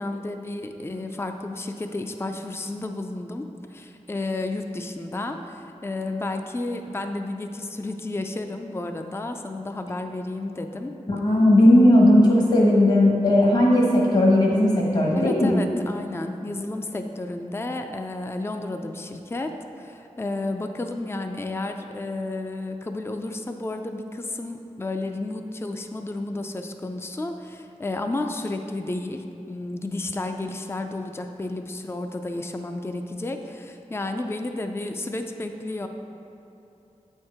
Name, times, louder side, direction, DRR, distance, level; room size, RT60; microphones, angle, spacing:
voice 1, 0.0-10.9 15.1-35.9, left 2 dB, 20° left, 5 dB, 0.4 m, -32 dB
voice 2, 11.1-15.6, left 1 dB, 55° left, -3 dB, 1.2 m, -17 dB
7.8 x 4.5 x 4.9 m, 2.9 s
wide cardioid pair, 50°, 13 cm